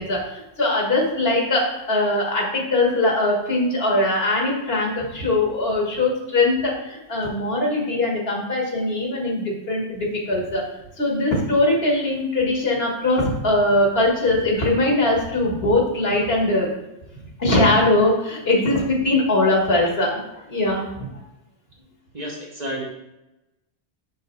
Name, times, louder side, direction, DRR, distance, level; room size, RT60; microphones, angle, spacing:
voice 1, 0.0-10.6 11.0-16.7 17.4-20.2 20.5-21.1, left 2 dB, 60° left, -1 dB, 1.6 m, -21 dB
voice 2, 22.1-22.9, equal, 40° right, -2 dB, 1.1 m, -31 dB
5.9 x 5.5 x 3.1 m, 0.94 s
omnidirectional pair, 1.1 m